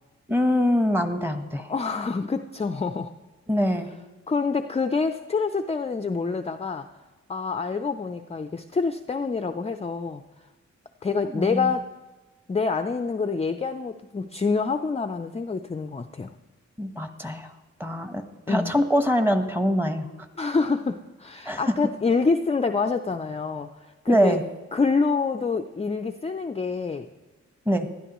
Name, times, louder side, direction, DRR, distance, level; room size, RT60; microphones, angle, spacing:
voice 1, 0.3-1.7 3.5-3.9 11.3-11.7 16.8-17.5 17.8-20.1 21.5-21.7 24.1-24.4 27.7-27.9, equal, 5° right, 7 dB, 1.1 m, -23 dB
voice 2, 1.7-3.1 4.3-6.9 7.3-10.2 11.0-11.8 12.5-16.3 18.5-18.7 20.4-23.7 24.0-24.4 24.7-27.1, left 4 dB, 20° left, 8 dB, 0.5 m, -26 dB
19.0 x 12.0 x 3.1 m, 1.2 s
cardioid pair, 85°, 29 cm